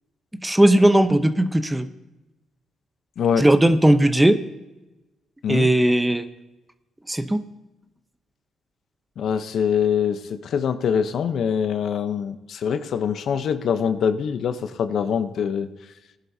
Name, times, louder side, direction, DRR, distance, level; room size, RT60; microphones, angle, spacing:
voice 1, 0.3-1.9 3.4-4.4 5.5-6.3 7.1-7.4, right 1 dB, 10° right, 10 dB, 0.8 m, -17 dB
voice 2, 3.2-3.5 5.4-5.7 9.2-15.7, left 7 dB, 65° left, 10 dB, 0.8 m, -24 dB
19.0 x 11.0 x 2.8 m, 1.0 s
cardioid pair, 90°, 0 cm